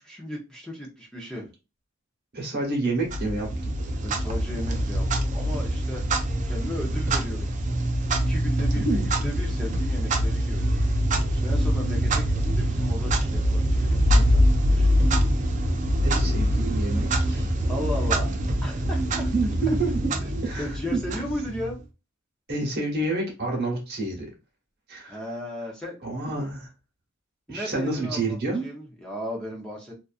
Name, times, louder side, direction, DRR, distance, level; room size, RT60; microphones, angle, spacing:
voice 1, 0.0-1.5 4.0-6.0 6.4-7.6 8.3-10.7 11.3-15.2 17.3-17.4 17.7-18.3 18.6-19.3 20.2-21.8 25.1-26.0 27.5-29.9, left 1 dB, 5° left, -3 dB, 0.6 m, -36 dB
voice 2, 2.3-3.8 8.7-9.0 16.0-17.5 19.3-19.9 20.4-20.7 22.5-24.3 24.9-25.2 26.0-26.7 27.5-28.6, right 2 dB, 55° right, 0 dB, 1.0 m, -28 dB
Clock, 3.1-21.8, equal, 40° right, 0.4 m, -24 dB
2.5 x 2.4 x 2.3 m, 0.28 s
head